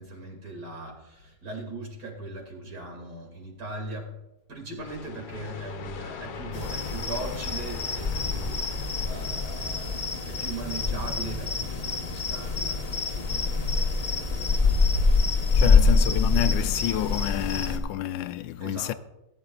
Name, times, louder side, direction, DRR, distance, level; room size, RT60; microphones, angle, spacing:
voice 1, 0.0-4.1 4.5-14.9 15.6-15.9 18.6-18.9, right 2 dB, 65° right, 3.1 m, -39 dB
sound 1, 4.8-10.5, left 6 dB, 70° left, 1.3 m, -42 dB
sound 2, 6.5-17.8, left 4 dB, 35° left, 0.6 m, -25 dB
voice 2, 15.5-18.9, left 13 dB, 85° left, 1.3 m, -29 dB
18.5 x 9.1 x 2.4 m
omnidirectional pair, 1.9 m